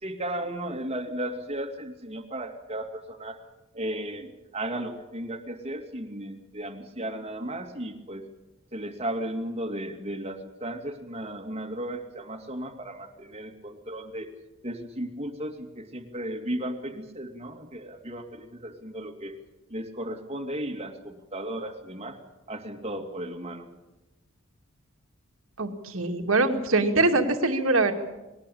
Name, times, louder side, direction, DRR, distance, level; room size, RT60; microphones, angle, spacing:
voice 1, 0.0-3.4 3.7-8.2 8.7-14.3 14.6-19.3 19.7-22.2 22.5-23.7, right 1 dB, 30° right, 4 dB, 2.5 m, -35 dB
voice 2, 25.6-27.9, right 2 dB, 80° right, 5 dB, 2.5 m, -23 dB
21.0 x 19.0 x 8.6 m, 1.0 s
head